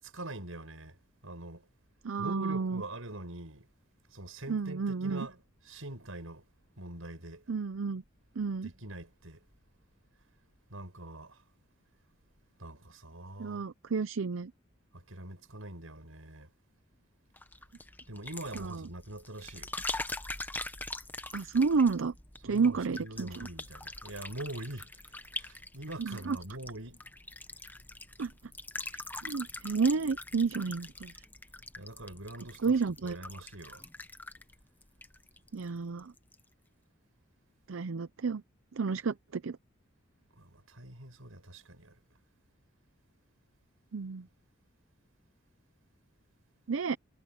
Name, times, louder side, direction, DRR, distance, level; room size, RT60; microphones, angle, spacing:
voice 1, 0.1-1.7 2.2-3.7 4.1-5.4 5.6-6.5 6.8-7.4 8.6-9.5 10.7-11.4 12.6-13.6 14.9-16.5 18.1-19.7 22.4-27.1 31.8-33.9 40.4-42.0, right 1 dB, 85° right, 5.6 m, -44 dB
voice 2, 2.0-2.8 4.5-5.3 7.5-8.0 8.4-8.7 13.4-14.5 18.5-18.8 21.3-22.1 22.4-23.5 26.0-26.4 28.2-28.3 29.2-31.1 32.6-33.2 35.5-36.1 37.7-38.4 38.7-39.6 43.9-44.3 46.7-47.0, right 4 dB, 70° right, 0.5 m, -31 dB
sound 1, 17.4-35.7 36.0-36.4, left 2 dB, 10° left, 1.0 m, -43 dB
head